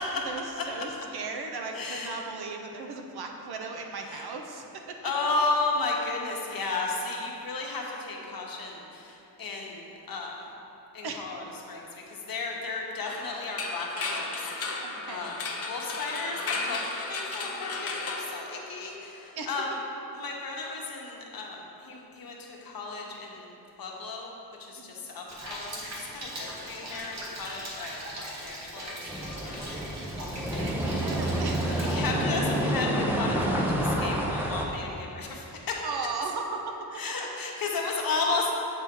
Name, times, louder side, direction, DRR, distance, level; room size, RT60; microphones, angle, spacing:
voice 1, 0.3-5.1 11.0-11.3 14.8-15.3 19.4-19.5 24.8-25.0 30.6-31.8 35.8-36.7, right 4 dB, 75° right, 3 dB, 0.7 m, -37 dB
voice 2, 1.7-2.1 4.0-4.3 5.0-10.5 10.9-14.8 15.1-16.8 17.1-19.8 20.1-23.5 23.8-24.3 24.6-29.7 31.8-35.8 36.9-38.5, left 3 dB, 65° left, -1 dB, 0.9 m, -34 dB
sound 1, 13.1-19.0, left 3 dB, 40° left, 0.5 m, -35 dB
Rain, 25.3-31.9, equal, 45° right, 1.1 m, -40 dB
sound 2, 29.1-34.7, right 1 dB, 5° right, 0.5 m, -28 dB
7.7 x 4.4 x 3.6 m, 2.9 s
wide cardioid pair, 135°, 39 cm